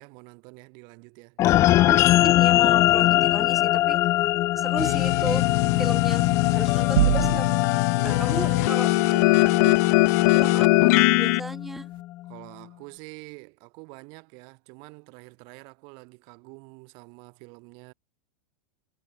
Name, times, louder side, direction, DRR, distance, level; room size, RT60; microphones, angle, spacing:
voice 1, 0.0-1.4 7.9-8.9 12.2-17.9, right 34 dB, 40° right, 7.6 m, -45 dB
sound 1, 1.4-12.0, left 15 dB, 25° left, 0.9 m, -23 dB
voice 2, 1.9-4.0 4.6-5.5 5.8-7.7 8.0-8.9 9.4-9.7 10.3-11.9, right 1 dB, ahead, 0.7 m, -35 dB
sound 2, 4.8-11.4, left 22 dB, 45° left, 0.5 m, -22 dB
sound 3, 7.0-7.9, right 14 dB, 75° right, 0.8 m, -23 dB
supercardioid pair, 170°, 12 cm